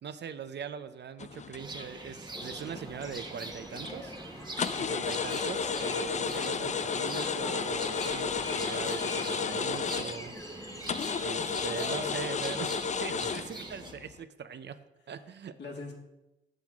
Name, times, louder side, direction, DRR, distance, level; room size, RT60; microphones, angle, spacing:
voice 1, 0.0-4.2 4.7-10.3 11.2-14.8 15.1-15.5, right 7 dB, 60° right, 11 dB, 0.6 m, -41 dB
sound 1, 1.2-2.0 2.4-3.4 3.7-4.0 4.6-10.4 10.9-14.2, left 6 dB, 35° left, 0.4 m, -33 dB
sound 2, 1.6-13.9, right 2 dB, 20° right, 1.1 m, -44 dB
sound 3, 2.3-12.7, left 1 dB, 15° left, 1.1 m, -45 dB
voice 2, 11.4-12.1 13.0-13.2 15.6-15.9, left 3 dB, 60° left, 0 dB, 2.0 m, -44 dB
7.7 x 7.0 x 3.6 m, 0.94 s
supercardioid pair, 55°, 20 cm